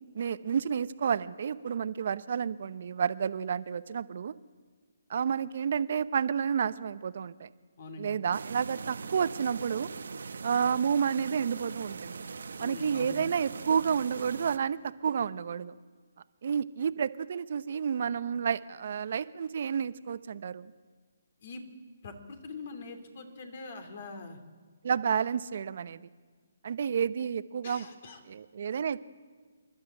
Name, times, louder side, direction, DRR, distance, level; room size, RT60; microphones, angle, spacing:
voice 1, 0.1-4.3 5.1-7.5 8.0-9.9 10.4-12.3 12.6-14.8 15.0-15.7 16.4-20.7 24.8-26.0 26.6-27.9 28.3-29.0, right 7 dB, 55° right, 15 dB, 0.8 m, -30 dB
voice 2, 7.8-8.1 12.6-13.2 21.4-21.6 22.0-24.4 27.6-28.2, left 3 dB, 55° left, 7 dB, 2.8 m, -43 dB
sound 1, 8.3-14.6, right 5 dB, 75° right, 1.1 m, -41 dB
26.5 x 12.0 x 8.8 m, 1.5 s
hypercardioid pair, 150°, 0 cm